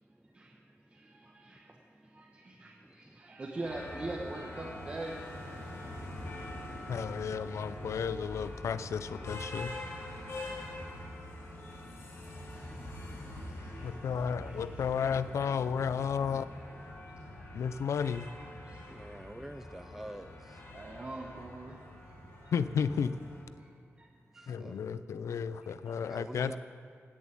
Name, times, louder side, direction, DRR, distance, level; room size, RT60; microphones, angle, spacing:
voice 1, 0.9-6.0 12.2-12.3 12.5-14.8 15.9-16.0 16.9-17.5 18.5-19.4 20.7-21.8 22.1-22.2 22.4-22.5 23.6-23.7 24.0-24.1 24.3-24.5, right 2 dB, 30° right, -2 dB, 1.2 m, -45 dB
sound 1, 3.6-23.4, left 1 dB, 60° left, 2.7 m, -44 dB
voice 2, 6.9-9.7 13.8-16.5 17.5-18.3 22.5-23.2 24.5-26.6, left 6 dB, 80° left, 14 dB, 0.5 m, -33 dB
voice 3, 18.9-20.4 24.6-24.8 26.1-26.6, right 1 dB, 5° right, 8 dB, 0.3 m, -44 dB
17.0 x 7.2 x 9.0 m, 2.2 s
wide cardioid pair, 175°, 5 cm